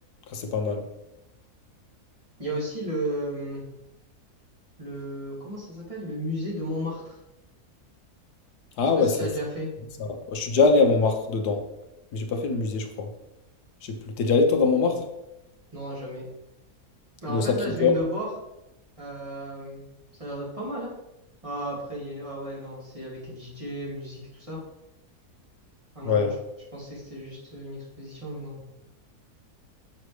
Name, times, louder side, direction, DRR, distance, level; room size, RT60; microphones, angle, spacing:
voice 1, 0.3-0.9 8.8-9.3 10.0-11.6 12.1-13.1 13.8-15.0 17.3-17.9 26.0-26.4, left 4 dB, 90° left, 5 dB, 1.5 m, -23 dB
voice 2, 2.4-3.6 4.8-7.2 9.0-9.7 15.7-16.2 17.2-18.3 19.0-19.8 20.2-20.9 21.4-24.6 25.9-26.3 26.7-28.6, equal, 20° right, -6 dB, 2.4 m, -34 dB
6.5 x 6.5 x 3.3 m, 0.91 s
omnidirectional pair, 1.7 m